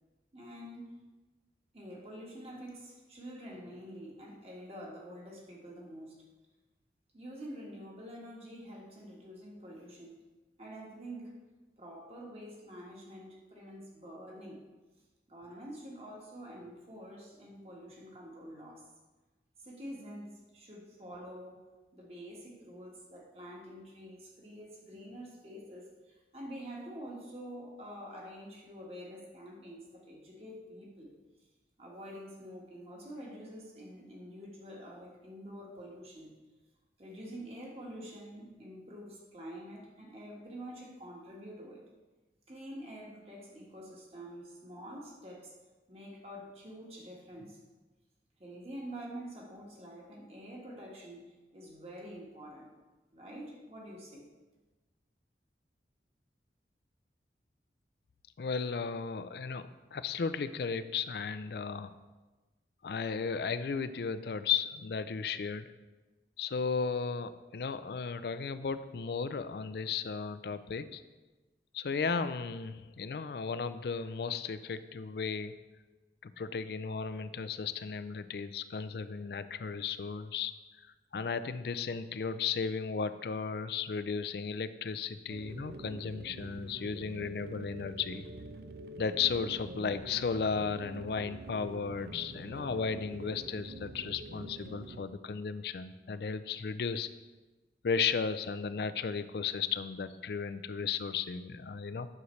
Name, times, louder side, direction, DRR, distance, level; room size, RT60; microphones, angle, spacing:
voice 1, 0.3-0.9 1.7-6.2 7.1-10.2 10.6-11.4 11.8-14.6 15.3-18.9 19.6-21.6 21.9-31.1 31.8-36.3 37.0-41.9 42.5-45.6 45.9-47.6 48.4-52.7 53.1-54.3, equal, 35° right, -2 dB, 1.5 m, -47 dB
voice 2, 58.4-61.9 62.8-65.7 66.4-71.0 71.7-75.6 76.2-80.5 80.8-88.3 89.0-97.1 97.8-102.1, left 5 dB, 60° left, 13 dB, 0.4 m, -35 dB
sound 1, 85.3-95.0, right 2 dB, 60° right, 0.4 m, -46 dB
9.6 x 6.4 x 3.2 m, 1.2 s
head